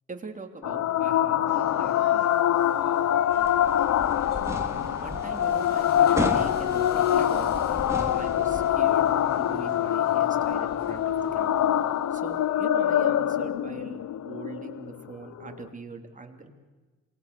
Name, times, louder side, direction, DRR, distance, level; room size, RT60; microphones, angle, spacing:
voice 1, 0.1-2.2 4.7-11.6 12.1-16.5, right 3 dB, 25° right, 4 dB, 3.2 m, -42 dB
sound 1, 0.6-15.6, left 11 dB, 65° left, 0.9 m, -24 dB
sound 2, 1.5-12.6, left 2 dB, 35° left, 6.3 m, -46 dB
sound 3, 3.3-8.7, right 1 dB, 10° right, 3.7 m, -36 dB
27.5 x 21.0 x 6.9 m, 1.3 s
cardioid pair, 90°, 30 cm